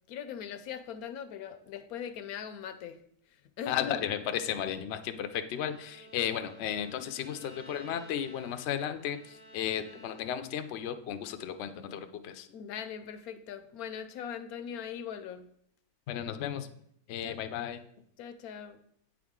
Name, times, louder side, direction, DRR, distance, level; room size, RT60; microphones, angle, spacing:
voice 1, 0.1-3.0 3.6-4.1 12.5-15.5 17.2-17.4 18.2-18.8, left 8 dB, 80° left, 10 dB, 1.1 m, -40 dB
voice 2, 3.7-12.5 16.1-16.7 17.1-17.8, left 9 dB, 65° left, 8 dB, 0.7 m, -34 dB
Bowed string instrument, 5.4-10.6, right 1 dB, 50° right, 2.3 m, -54 dB
8.6 x 4.8 x 3.6 m, 0.69 s
omnidirectional pair, 1.5 m